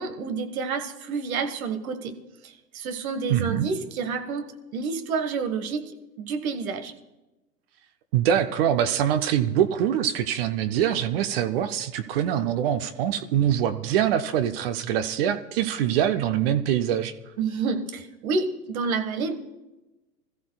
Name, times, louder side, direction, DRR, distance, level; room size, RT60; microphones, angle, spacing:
voice 1, 0.0-5.9 6.2-6.9 17.4-19.3, right 4 dB, 55° right, 8 dB, 1.6 m, -29 dB
voice 2, 3.3-3.7 8.1-17.1, right 10 dB, 35° right, 10 dB, 0.7 m, -24 dB
24.5 x 14.0 x 2.3 m, 1.0 s
figure-of-eight pair, 110°, 50 cm